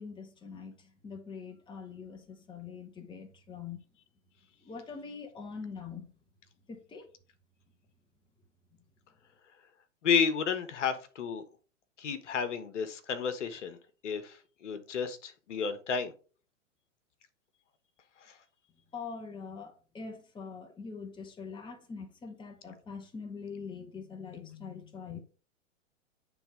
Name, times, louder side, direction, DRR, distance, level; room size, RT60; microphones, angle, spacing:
voice 1, 0.0-3.8 4.6-6.1 6.7-7.1 18.9-25.2, left 5 dB, 10° left, 1.2 m, -43 dB
voice 2, 10.0-11.4 12.0-13.8 14.0-14.4 14.6-16.1, left 6 dB, 65° left, 1.5 m, -31 dB
9.8 x 3.6 x 5.0 m
hypercardioid pair, 110°, 38 cm